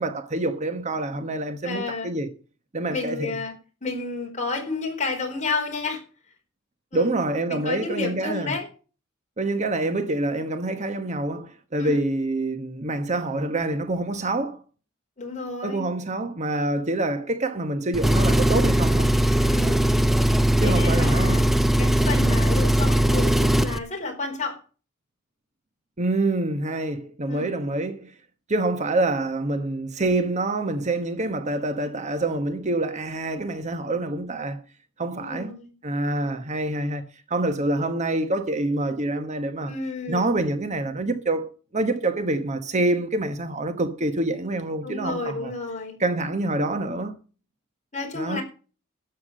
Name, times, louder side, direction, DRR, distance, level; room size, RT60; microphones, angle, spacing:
voice 1, 0.0-2.3 2.7-3.4 6.9-8.6 9.4-14.6 15.6-19.1 20.6-21.4 26.0-28.1 28.5-34.6 35.0-35.5 35.8-37.0 37.3-39.7 40.1-45.5 46.0-47.1 48.1-48.4, right 2 dB, 35° right, 1.1 m, -26 dB
voice 2, 1.6-2.1 2.9-3.5 3.8-6.0 6.9-7.1 7.5-8.7 11.8-12.0 15.2-15.8 19.4-20.0 20.6-21.4 21.8-24.6 27.3-27.5 35.1-35.7 39.7-40.3 44.8-46.0 47.9-48.4, left 3 dB, 35° left, 4.4 m, -31 dB
Engine, 17.9-23.8, right 1 dB, ahead, 0.6 m, -20 dB
12.5 x 8.3 x 6.4 m
head